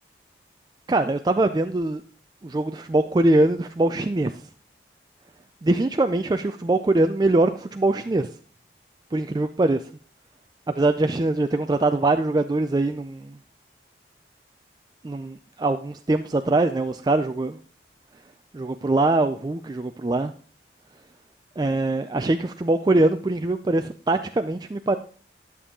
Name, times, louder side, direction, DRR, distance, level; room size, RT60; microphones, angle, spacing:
voice 1, 0.9-2.0 2.4-4.4 5.6-8.3 9.1-9.8 10.8-13.4 15.0-17.6 18.5-20.3 21.6-25.0, right 2 dB, 20° right, 8 dB, 0.3 m, -22 dB
11.0 x 7.0 x 3.7 m, 0.42 s
head